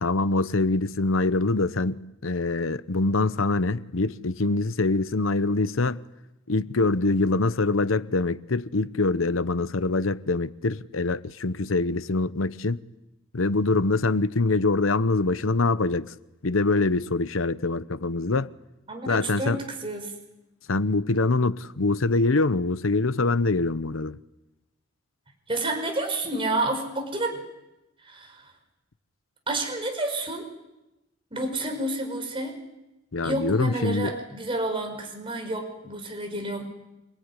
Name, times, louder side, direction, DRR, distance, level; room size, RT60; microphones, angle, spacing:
voice 1, 0.0-6.0 6.5-12.8 13.3-16.1 16.4-18.5 19.1-19.6 20.7-24.2 33.1-34.1, left 3 dB, 90° left, 0.9 m, -24 dB
voice 2, 18.9-20.1 25.5-27.4 28.0-28.5 29.5-30.5 31.3-32.6 33.2-36.6, right 2 dB, 25° right, 5.5 m, -30 dB
27.0 x 19.5 x 9.9 m
head